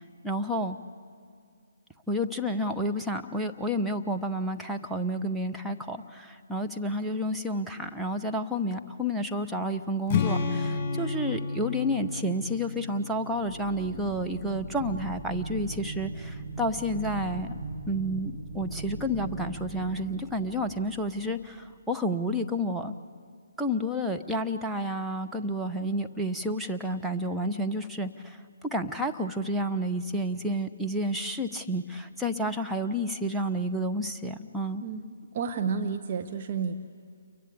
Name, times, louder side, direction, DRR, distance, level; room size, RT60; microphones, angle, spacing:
voice 1, 0.2-0.8 2.1-17.5 17.9-22.9 23.6-34.8, equal, 5° right, 2 dB, 1.0 m, -30 dB
Strum, 10.1-14.2, left 4 dB, 25° left, 5.9 m, -32 dB
sound 1, 13.3-21.5, right 2 dB, 55° right, 7.8 m, -39 dB
voice 2, 34.8-36.8, right 6 dB, 40° right, 7 dB, 1.1 m, -31 dB
29.5 x 23.0 x 8.5 m, 2.3 s
figure-of-eight pair, 140°, 0 cm